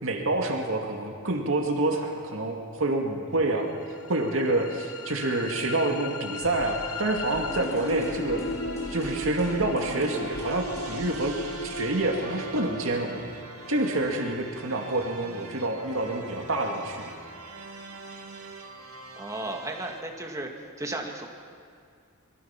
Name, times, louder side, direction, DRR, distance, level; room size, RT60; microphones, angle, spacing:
voice 1, 0.0-3.7 4.1-8.5 8.9-11.3 11.6-13.3 13.7-17.0, right 2 dB, 65° right, 2 dB, 2.4 m, -27 dB
sound 1, 3.8-15.8, left 3 dB, 80° left, 1.1 m, -38 dB
sound 2, 6.4-20.0, right 2 dB, 85° right, 2.3 m, -43 dB
sound 3, 7.3-13.2 13.5-13.6, equal, 15° left, 2.8 m, -42 dB
voice 2, 19.2-20.5 20.8-21.3, right 2 dB, 15° right, 1 dB, 2.2 m, -34 dB
26.5 x 22.0 x 6.0 m, 2.2 s
head